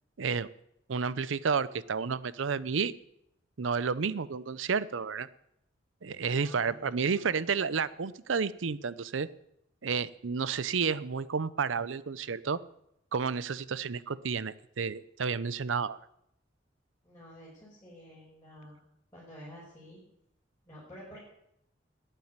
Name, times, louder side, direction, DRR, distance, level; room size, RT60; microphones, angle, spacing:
voice 1, 0.2-0.5 0.9-2.9 3.6-5.3 6.0-9.3 9.8-12.6 13.1-16.0, right 5 dB, 85° right, 17 dB, 0.6 m, -31 dB
voice 2, 6.3-7.5 17.0-18.8 19.1-20.0 20.7-21.2, equal, 15° left, -9 dB, 5.3 m, -50 dB
11.5 x 9.1 x 9.5 m, 0.78 s
head